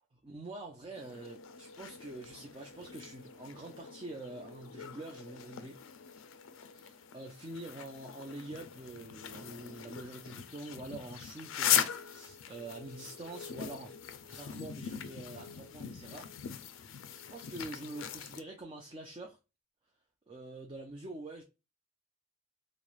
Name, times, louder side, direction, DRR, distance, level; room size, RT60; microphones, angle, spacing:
voice 1, 0.2-5.8 6.7-14.0 14.2-16.3 17.1-19.4 20.3-21.4, right 2 dB, 25° right, 0.4 m, -46 dB
sound 1, 1.0-18.4, left 9 dB, 70° left, 0.4 m, -40 dB
3.1 x 2.0 x 2.3 m
head